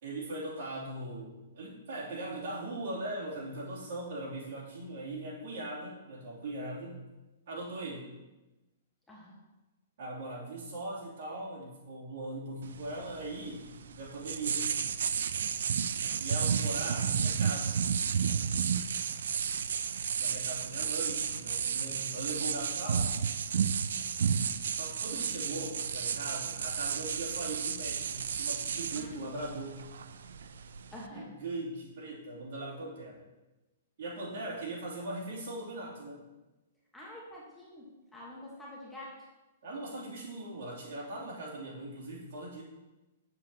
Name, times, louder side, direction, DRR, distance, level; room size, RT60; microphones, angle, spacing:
voice 1, 0.0-7.0 7.5-8.1 10.0-14.7 16.2-17.8 20.2-23.2 24.7-29.9 31.1-33.2 34.0-36.2 39.6-42.6, right 2 dB, 60° right, -5 dB, 2.7 m, -40 dB
voice 2, 9.1-9.4 28.9-29.2 30.9-31.3 36.9-39.2, left 1 dB, 5° left, -5 dB, 1.2 m, -47 dB
sound 1, 12.6-31.1, right 7 dB, 80° right, 0.4 m, -32 dB
7.6 x 7.4 x 2.8 m, 1.1 s
hypercardioid pair, 155°, 0 cm